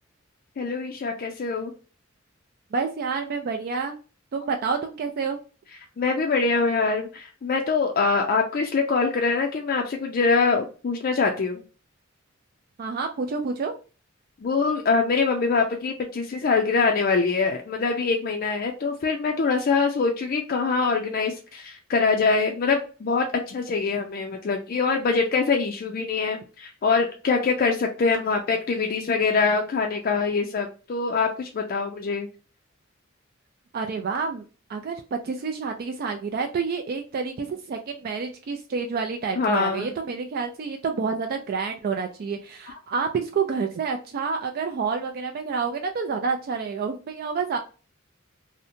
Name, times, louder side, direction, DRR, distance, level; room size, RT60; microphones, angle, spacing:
voice 1, 0.6-1.7 6.0-11.6 14.4-32.3 39.4-39.9 42.7-42.8, left 4 dB, 45° left, 2 dB, 0.4 m, -24 dB
voice 2, 2.7-4.0 4.3-5.4 12.8-13.7 33.7-34.4 34.7-47.6, right 5 dB, 50° right, 5 dB, 0.3 m, -28 dB
2.7 x 2.1 x 2.5 m, 0.35 s
head